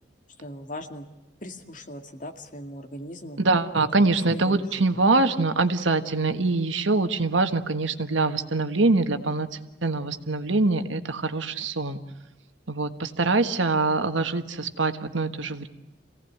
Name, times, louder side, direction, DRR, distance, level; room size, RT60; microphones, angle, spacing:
voice 1, 0.4-1.1 1.4-3.4 4.0-4.6, left 1 dB, 45° left, 5 dB, 2.2 m, -39 dB
voice 2, 3.4-9.5 9.8-12.0 12.7-15.7, right 3 dB, 85° right, 8 dB, 1.6 m, -24 dB
27.5 x 17.5 x 9.4 m, 1.0 s
head